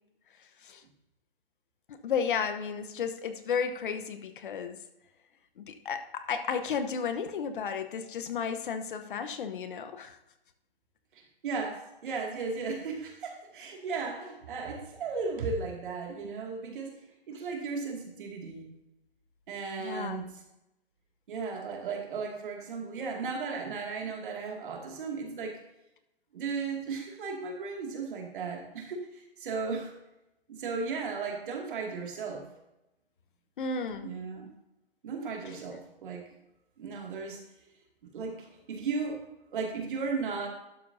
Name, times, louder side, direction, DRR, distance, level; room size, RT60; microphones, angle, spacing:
voice 1, 1.9-4.8 5.6-10.2 19.8-20.2 33.6-34.1, left 6 dB, 55° left, 9 dB, 1.0 m, -33 dB
voice 2, 11.1-17.0 17.3-18.7 19.5-20.3 21.3-25.6 26.3-29.9 30.5-32.5 34.0-34.5 35.0-36.3 36.8-37.4 38.1-39.2 39.5-40.5, right 4 dB, 55° right, 1 dB, 2.3 m, -35 dB
12.0 x 6.9 x 2.7 m, 0.90 s
hypercardioid pair, 150°, 31 cm